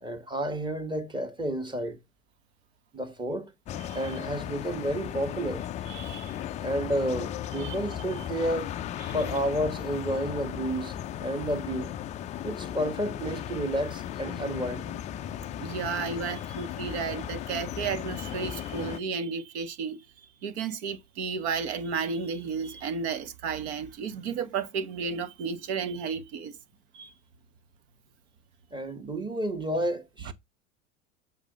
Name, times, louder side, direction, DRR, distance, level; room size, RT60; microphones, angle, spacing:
voice 1, 0.0-2.0 2.9-3.5 3.9-5.6 6.6-8.7 9.1-11.9 12.4-15.0 28.7-30.3, right 1 dB, 10° right, 1.5 m, -31 dB
sound 1, 3.6-19.0, left 10 dB, 20° left, 0.3 m, -36 dB
voice 2, 3.8-4.2 5.9-6.4 7.6-7.8 8.2-8.3 9.0-9.2 15.6-26.6 26.9-27.1 30.2-30.3, right 5 dB, 55° right, 1.2 m, -33 dB
7.2 x 4.0 x 5.1 m
figure-of-eight pair, 90°, 39 cm